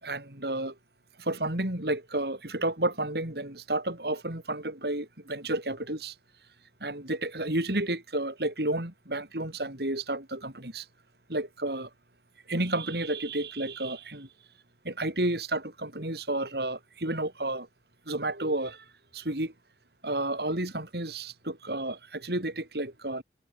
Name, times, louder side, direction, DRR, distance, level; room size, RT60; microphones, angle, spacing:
voice 1, 0.0-0.7 1.2-6.1 6.8-10.9 11.3-11.9 12.5-14.3 14.8-17.7 18.1-18.8 19.1-19.5 20.0-23.2, right 1 dB, 65° right, 4.8 m, -31 dB
head